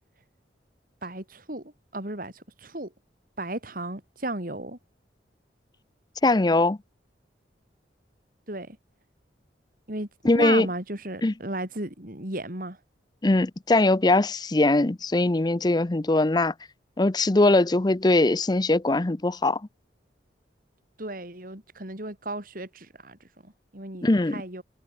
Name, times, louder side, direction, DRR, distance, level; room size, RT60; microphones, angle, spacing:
voice 1, 1.0-2.9 3.4-4.8 8.5-8.8 9.9-12.8 21.0-23.2 23.4-24.6, right 2 dB, 50° right, 5.1 m, -35 dB
voice 2, 6.2-6.8 10.2-10.7 11.2-11.3 13.2-16.5 17.0-19.6 24.0-24.4, left 2 dB, 25° left, 0.6 m, -21 dB
head